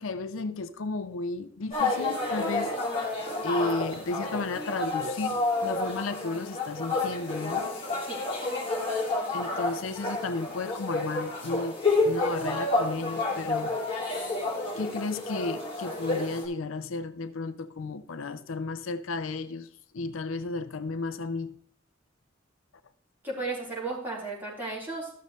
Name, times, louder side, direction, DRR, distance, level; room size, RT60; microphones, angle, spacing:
voice 1, 0.0-2.8 3.4-7.7 9.3-13.8 14.8-19.7 19.9-21.6, left 3 dB, 80° left, 0.6 m, -33 dB
sound 1, 1.7-16.5, left 2 dB, 25° left, 2.6 m, -30 dB
voice 2, 23.2-25.1, right 3 dB, 10° right, 3.8 m, -34 dB
13.5 x 6.7 x 3.1 m
head